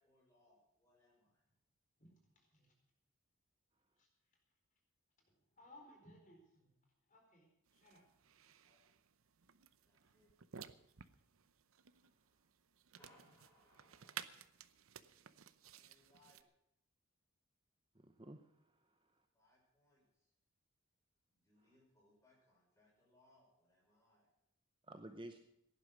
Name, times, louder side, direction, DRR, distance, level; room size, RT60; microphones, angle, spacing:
voice 1, 0.0-1.4 8.6-8.8 9.8-10.3 13.0-14.5 15.7-16.4 19.3-20.3 21.3-24.3, left 1 dB, 15° left, -3 dB, 6.5 m, -72 dB
voice 2, 5.6-6.7 7.1-7.5 7.7-8.0, left 1 dB, 35° left, 1 dB, 4.4 m, -61 dB
sound 1, 7.7-16.4, right 8 dB, 90° right, 0.8 m, -56 dB
voice 3, 17.9-19.2 24.8-25.4, right 1 dB, 25° right, 7 dB, 0.8 m, -54 dB
16.5 x 11.0 x 6.2 m, 0.79 s
head